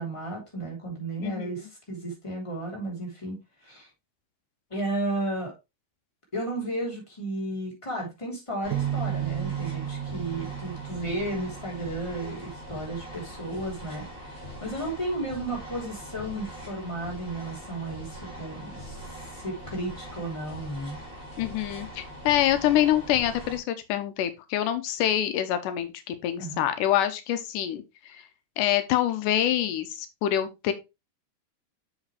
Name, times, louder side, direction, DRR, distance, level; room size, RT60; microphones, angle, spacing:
voice 1, 0.0-3.9 4.7-5.5 6.3-21.0 26.4-26.6, right 1 dB, 10° left, 3.0 m, -33 dB
voice 2, 1.2-1.6 21.4-28.2 28.6-30.7, left 11 dB, 90° left, 2.4 m, -26 dB
sound 1, 8.6-23.6, equal, 25° left, 3.9 m, -42 dB
sound 2, 8.7-12.4, right 11 dB, 75° right, 2.2 m, -33 dB
7.3 x 5.8 x 3.3 m
omnidirectional pair, 3.6 m